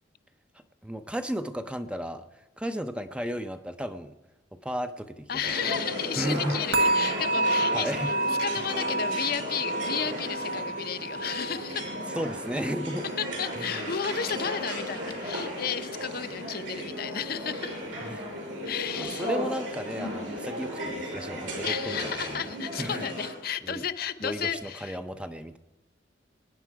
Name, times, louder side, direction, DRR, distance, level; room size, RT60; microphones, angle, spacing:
voice 1, 0.8-2.2 2.6-4.1 4.6-5.4 6.2-6.6 7.7-8.1 12.2-13.0 13.6-13.8 18.1-18.2 19.0-22.4 22.8-23.0 23.6-23.8 24.2-25.6, equal, 5° right, 9 dB, 0.5 m, -34 dB
voice 2, 5.3-7.9 8.4-11.9 13.2-17.8 18.7-19.3 21.6-25.0, left 8 dB, 50° left, 10 dB, 0.6 m, -33 dB
sound 1, 5.4-23.3, equal, 80° right, 5.4 m, -35 dB
sound 2, 6.7-13.8 14.1-14.5 15.0-15.1, right 2 dB, 55° right, 0.8 m, -30 dB
24.0 x 9.6 x 4.6 m, 1.1 s
head